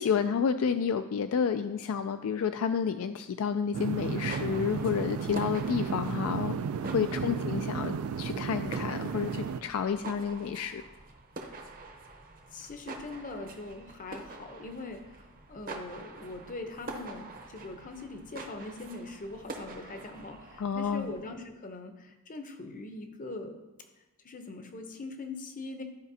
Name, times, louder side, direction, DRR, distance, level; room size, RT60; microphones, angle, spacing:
voice 1, 0.0-6.6 6.8-10.8 20.6-21.1, left 6 dB, 65° left, 9 dB, 0.3 m, -30 dB
sound 1, 3.7-9.6, right 6 dB, 70° right, 0.3 m, -33 dB
sound 2, 4.1-21.4, right 3 dB, 40° right, 0.8 m, -46 dB
voice 2, 7.2-7.5 12.5-23.6 24.2-25.8, left 2 dB, 35° left, 6 dB, 0.7 m, -42 dB
13.5 x 5.1 x 2.7 m, 1.1 s
head